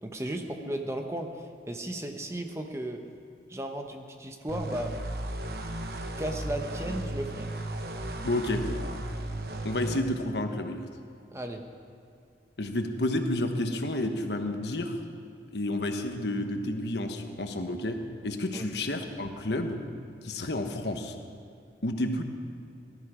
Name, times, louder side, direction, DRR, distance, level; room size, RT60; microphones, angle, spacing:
voice 1, 0.0-3.0 3.5-4.9 6.2-7.5 11.3-11.6 18.5-18.7, right 1 dB, 15° right, 4 dB, 0.9 m, -35 dB
sound 1, 4.5-10.0, right 1 dB, 60° right, 1.0 m, -35 dB
voice 2, 8.2-8.7 9.6-10.9 12.6-15.0 15.5-19.8 20.2-21.2 21.8-22.2, left 1 dB, 75° left, 6 dB, 1.2 m, -30 dB
18.5 x 13.0 x 5.0 m, 2.4 s
head